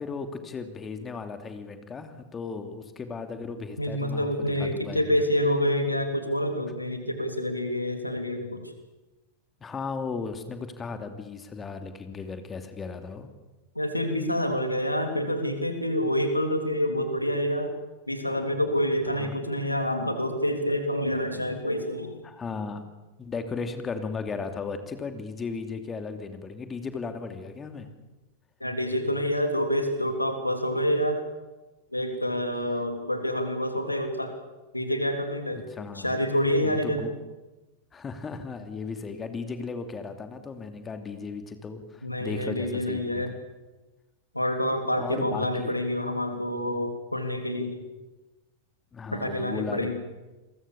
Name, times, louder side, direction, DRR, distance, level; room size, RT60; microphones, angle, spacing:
voice 1, 0.0-4.3 4.6-5.2 9.6-13.3 19.1-19.4 22.2-22.8 23.2-27.9 35.5-36.2 36.6-37.1 37.9-43.2 45.0-45.7 48.9-49.9, left 4 dB, 20° left, 8 dB, 2.8 m, -36 dB
voice 2, 3.8-8.6 13.7-17.7 18.1-22.2 28.6-31.2 31.9-34.3 34.7-35.6 35.9-37.0 42.0-43.3 44.3-47.8 49.1-49.9, equal, 85° left, 6 dB, 3.2 m, -27 dB
29.0 x 22.5 x 7.1 m, 1.1 s
figure-of-eight pair, 90°, 0 cm